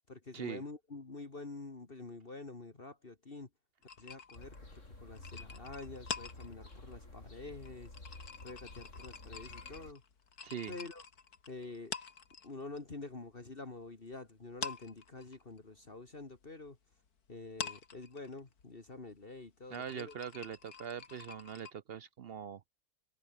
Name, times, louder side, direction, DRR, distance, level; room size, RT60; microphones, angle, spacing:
voice 1, 0.1-3.5 4.0-4.6 5.0-7.9 8.4-10.0 10.7-11.0 11.5-11.9 12.4-16.8 17.3-20.2, left 3 dB, 40° left, 2.3 m, -47 dB
sound 1, 3.8-12.8 13.1-14.1 14.4-21.7, left 6 dB, 90° left, 2.5 m, -47 dB
sound 2, 4.3-9.9, left 2 dB, 55° left, 5.3 m, -51 dB
voice 2, 10.4-10.7 19.7-22.6, right 8 dB, 55° right, 0.7 m, -42 dB
omnidirectional pair, 1.6 m